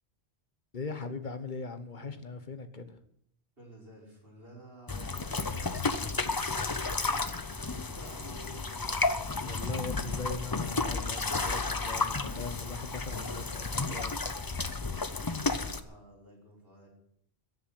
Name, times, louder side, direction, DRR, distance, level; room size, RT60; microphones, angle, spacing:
voice 1, 0.7-3.0 9.4-14.1, left 3 dB, 45° left, 10 dB, 1.4 m, -40 dB
voice 2, 3.6-7.3 7.6-9.5 15.5-16.9, right 1 dB, 60° right, -3 dB, 5.5 m, -52 dB
sound 1, 4.9-15.8, left 3 dB, 25° left, 0.7 m, -32 dB
14.5 x 8.1 x 9.4 m, 0.70 s
omnidirectional pair, 1.1 m